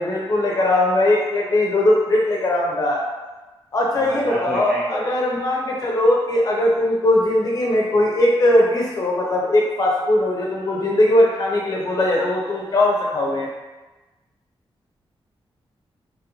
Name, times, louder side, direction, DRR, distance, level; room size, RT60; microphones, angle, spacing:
voice 1, 0.0-3.0 3.7-13.5, left 1 dB, 40° left, -3 dB, 0.6 m, -19 dB
voice 2, 4.0-5.1, equal, 5° right, -6 dB, 0.3 m, -29 dB
3.0 x 2.5 x 2.9 m, 1.2 s
wide cardioid pair, 175°, 10 cm